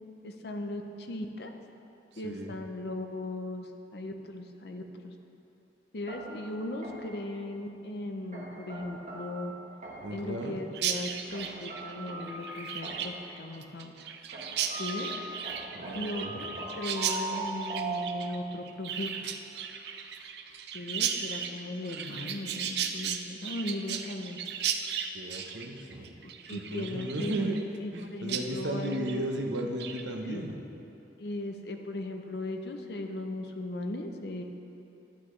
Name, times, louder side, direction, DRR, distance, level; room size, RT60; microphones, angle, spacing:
voice 1, 0.2-1.5 2.2-3.7 3.9-4.8 5.9-9.5 10.1-14.0 14.8-15.1 15.9-16.5 16.7-19.3 20.7-24.4 26.5-27.5 27.8-29.2 30.2-30.5 31.2-34.4, left 1 dB, 60° left, 5 dB, 0.7 m, -37 dB
voice 2, 2.1-2.6 10.0-10.6 15.7-16.7 25.1-26.2 26.5-27.6 27.9-30.6, right 1 dB, 90° right, 1 dB, 0.9 m, -35 dB
sound 1, 6.1-7.3 8.3-10.3 11.3-13.3 14.3-18.6, right 2 dB, 45° right, 1.2 m, -40 dB
Chirp tweet, 10.7-28.0 28.3-28.4 28.8-29.2 29.5-30.0, right 8 dB, 65° right, 0.5 m, -36 dB
11.5 x 8.2 x 3.2 m, 2.9 s
head